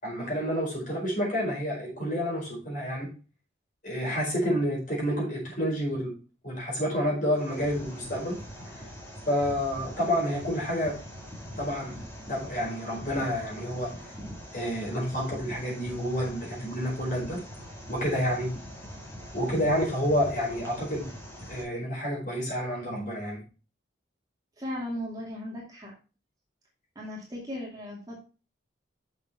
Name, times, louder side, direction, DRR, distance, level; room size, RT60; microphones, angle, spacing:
voice 1, 0.0-3.1 3.8-6.1 6.4-8.4 9.3-10.9 11.6-12.0 12.3-13.9 14.5-17.4 17.9-18.5 19.3-21.1 21.5-23.4, equal, 45° left, -3 dB, 4.7 m, -29 dB
sound 1, 7.3-21.6, equal, 15° left, 2.1 m, -43 dB
voice 2, 24.6-25.9 27.0-28.2, left 1 dB, 20° right, -3 dB, 2.3 m, -36 dB
6.9 x 6.5 x 4.2 m, 0.33 s
head